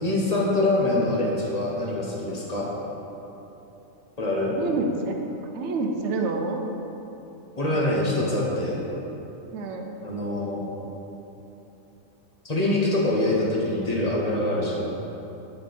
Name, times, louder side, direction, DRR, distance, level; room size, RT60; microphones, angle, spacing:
voice 1, 0.0-2.7 4.2-4.5 7.6-8.8 10.0-10.6 12.4-14.9, left 2 dB, 30° left, -5 dB, 1.3 m, -24 dB
voice 2, 4.5-5.1 5.4-6.6 9.5-10.0, right 3 dB, 60° right, 3 dB, 1.0 m, -28 dB
11.0 x 4.6 x 4.2 m, 2.9 s
omnidirectional pair, 1.4 m